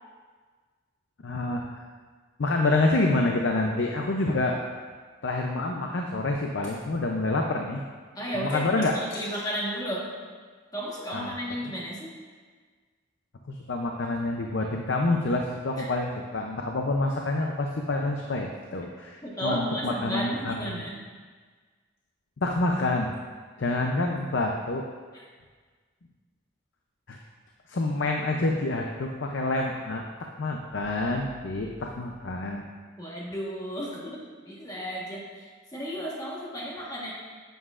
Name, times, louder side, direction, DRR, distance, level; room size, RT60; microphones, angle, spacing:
voice 1, 1.2-1.6 2.4-4.6 5.2-7.8 8.3-9.2 11.1-11.4 13.5-20.8 22.4-23.1 23.6-24.9 27.1-27.2 27.7-30.0 30.4-32.6, left 2 dB, 65° left, 2 dB, 0.6 m, -27 dB
voice 2, 8.1-10.1 10.7-12.1 15.8-15.9 19.2-21.0 25.1-25.3 33.0-34.2 34.4-37.1, equal, 20° left, -4 dB, 1.3 m, -33 dB
9.5 x 7.8 x 2.5 m, 1.5 s
head